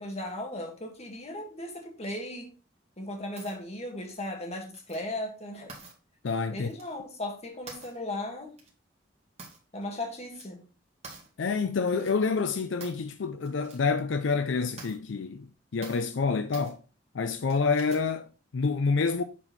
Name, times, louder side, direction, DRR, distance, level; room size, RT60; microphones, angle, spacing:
voice 1, 0.0-2.5 3.0-5.8 6.5-8.5 9.7-10.7, left 1 dB, 35° left, 1.7 m, -37 dB
sound 1, 3.4-3.6 4.7-5.1 5.7-5.9 6.7-7.0 7.7-8.0 8.6-8.7 9.4-9.8 10.1-10.4 11.0-11.3 11.8-12.1 12.8-13.1 13.4-13.8 14.2-14.3 14.8-15.0 15.8-16.1 16.5-16.7 17.5-18.1, right 4 dB, 35° right, 1.9 m, -47 dB
voice 2, 6.2-6.7 11.4-16.8 17.1-19.2, left 4 dB, 80° left, 0.5 m, -28 dB
7.1 x 4.3 x 4.0 m
head